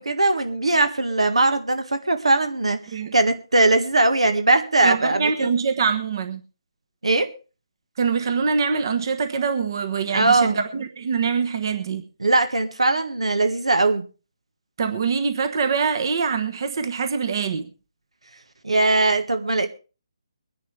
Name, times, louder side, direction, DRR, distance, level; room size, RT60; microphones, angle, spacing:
voice 1, 0.0-2.8 3.1-5.5 7.0-7.3 10.1-10.6 12.2-14.0 18.6-19.7, right 2 dB, 85° right, 1.7 m, -20 dB
voice 2, 4.8-6.4 8.0-12.0 14.8-17.7, right 5 dB, 45° right, 1.2 m, -24 dB
23.0 x 10.5 x 3.3 m
figure-of-eight pair, 155°, 3 cm